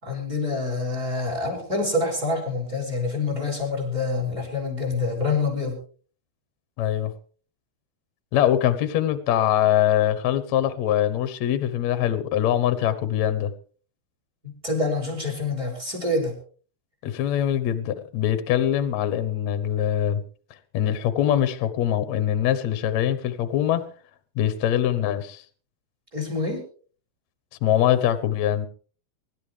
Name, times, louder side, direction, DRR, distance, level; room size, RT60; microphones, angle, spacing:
voice 1, 0.0-5.8 14.4-16.3 26.1-26.6, left 3 dB, 25° right, 2 dB, 5.7 m, -26 dB
voice 2, 6.8-7.1 8.3-13.5 17.0-20.2 20.7-23.8 24.4-25.4 27.6-28.7, left 11 dB, 65° left, 13 dB, 2.0 m, -23 dB
25.0 x 12.0 x 3.4 m, 0.42 s
omnidirectional pair, 4.1 m